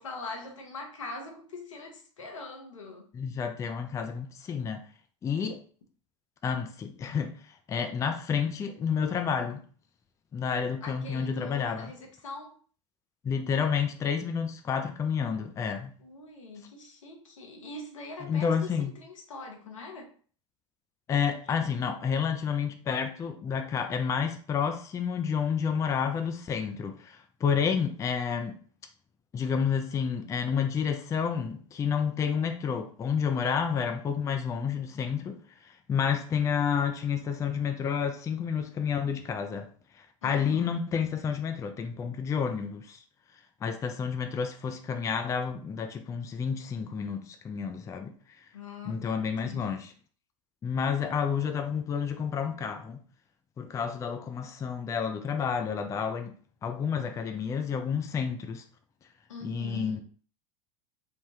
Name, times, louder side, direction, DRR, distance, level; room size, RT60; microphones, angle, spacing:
voice 1, 0.0-3.1 10.8-12.5 16.0-18.7 19.0-20.1 40.2-40.8 48.5-49.8 59.3-60.0, left 3 dB, 85° left, 0.8 m, -42 dB
voice 2, 3.1-4.8 5.2-5.6 6.4-9.6 10.3-11.9 13.2-15.9 18.2-18.9 21.1-28.6 29.3-39.7 39.9-43.0 43.6-48.4 48.9-49.9 50.6-53.0 53.6-56.4 56.6-58.6 59.4-60.0, left 6 dB, 20° left, 0.4 m, -30 dB
3.3 x 2.2 x 2.7 m
hypercardioid pair, 90°, 16 cm